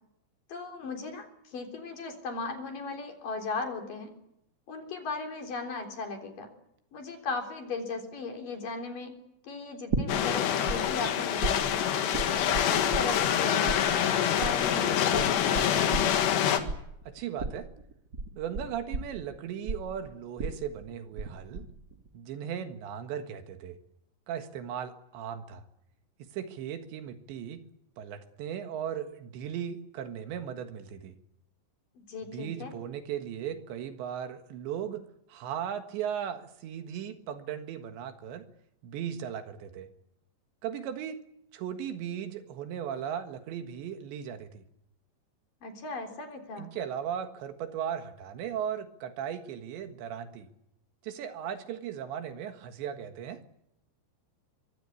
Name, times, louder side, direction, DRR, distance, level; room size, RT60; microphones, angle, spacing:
voice 1, 0.5-4.1 4.7-6.5 6.9-9.1 9.4-11.6 12.1-16.2 32.1-32.7 45.6-46.7, left 3 dB, 50° left, 4 dB, 5.0 m, -37 dB
sound 1, 9.9-10.8 11.0-13.4 13.7-21.3 21.5-22.1, right 3 dB, 30° right, 2.1 m, -34 dB
sound 2, 10.1-16.6, left 9 dB, 70° left, 3.8 m, -26 dB
voice 2, 17.1-17.7 18.4-21.7 22.1-23.8 24.3-25.6 26.2-27.6 28.0-31.2 32.3-38.5 38.8-39.9 40.6-41.3 41.5-44.7 46.6-50.5 51.0-53.4, right 9 dB, 75° right, 8 dB, 3.8 m, -37 dB
24.5 x 23.5 x 8.4 m, 0.79 s
omnidirectional pair, 5.2 m